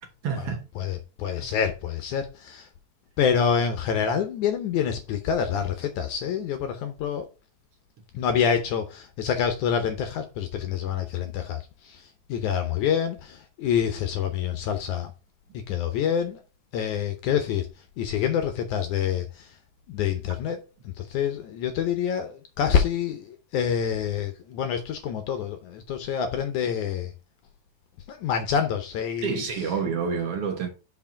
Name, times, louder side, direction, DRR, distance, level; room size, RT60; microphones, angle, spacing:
voice 1, 0.2-0.7 1.4-1.5 29.2-30.7, right 6 dB, 55° right, 1.8 m, -28 dB
voice 2, 0.8-2.7 3.2-7.3 8.1-15.1 15.7-16.4 16.7-17.7 18.0-19.6 19.9-27.1 28.1-29.4, left 8 dB, 70° left, 2.0 m, -27 dB
5.8 x 4.7 x 5.8 m
omnidirectional pair, 4.1 m